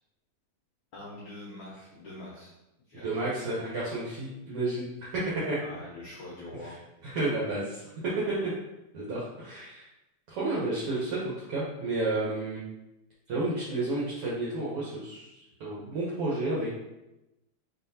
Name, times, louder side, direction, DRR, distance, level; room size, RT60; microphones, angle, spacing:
voice 1, 0.9-2.5 2.9-3.1 5.6-6.7, left 1 dB, 80° left, -5 dB, 1.1 m, -44 dB
voice 2, 3.0-5.6 7.0-7.8 8.3-8.5 8.9-9.9 10.3-12.6 13.3-16.7, right 2 dB, 65° right, -7 dB, 1.5 m, -31 dB
4.1 x 3.9 x 2.7 m, 0.95 s
omnidirectional pair, 3.3 m